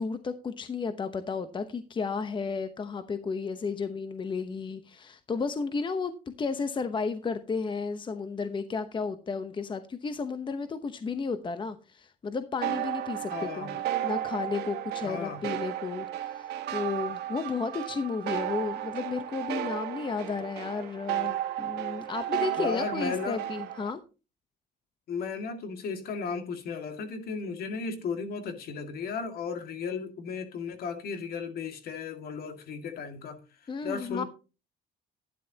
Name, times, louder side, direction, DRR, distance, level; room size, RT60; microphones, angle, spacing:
voice 1, 0.0-24.0 33.7-34.2, left 4 dB, 30° left, 0.9 m, -33 dB
sound 1, 12.6-23.9, right 11 dB, 75° right, 1.5 m, -34 dB
voice 2, 13.3-13.7 15.0-15.4 22.6-23.4 25.1-33.4 33.8-34.2, left 5 dB, 65° left, 2.1 m, -35 dB
12.5 x 10.5 x 2.9 m
cardioid pair, 110°, 17 cm